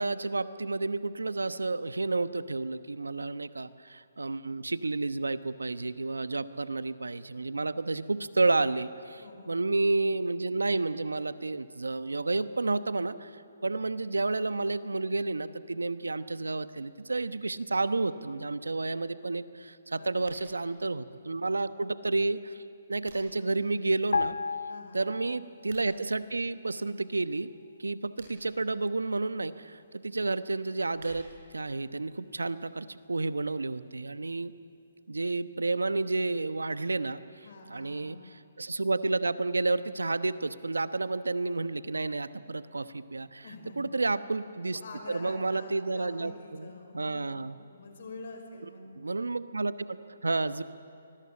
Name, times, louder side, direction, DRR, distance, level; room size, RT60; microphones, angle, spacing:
voice 1, 0.0-22.6 22.9-24.4 24.9-27.5 27.8-31.3 31.5-34.5 35.1-37.4 37.7-43.4 43.8-44.8 45.1-47.6 49.0-50.6, right 3 dB, 85° right, 13 dB, 1.0 m, -31 dB
voice 2, 9.2-9.6 19.9-21.3 24.7-25.1 37.4-38.3 43.4-43.9 44.7-48.8, left 3 dB, 60° left, 4 dB, 5.7 m, -47 dB
sound 1, 20.2-20.5 22.5-23.5 25.5-25.9 27.9-28.6 30.6-31.5, right 3 dB, 55° right, 7.3 m, -53 dB
sound 2, 24.1-25.8 26.0-26.2, left 4 dB, 75° left, 0.6 m, -33 dB
24.5 x 21.0 x 8.7 m, 2.6 s
figure-of-eight pair, 140°, 0 cm